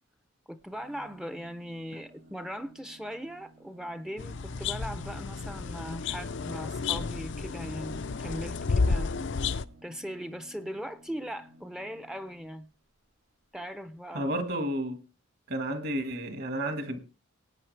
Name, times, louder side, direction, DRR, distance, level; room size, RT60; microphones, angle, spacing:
voice 1, 0.5-9.1 9.8-12.7 13.5-14.3, equal, 5° right, 0.6 m, -39 dB
sound 1, 0.6-5.5 7.1-12.6 13.5-13.6 13.8-13.9, right 1 dB, 70° right, 4.4 m, -56 dB
sound 2, 4.2-9.6, left 4 dB, 55° left, 0.5 m, -31 dB
voice 2, 14.1-15.0 15.5-17.0, right 1 dB, 50° right, 1.7 m, -31 dB
19.0 x 8.9 x 3.3 m
head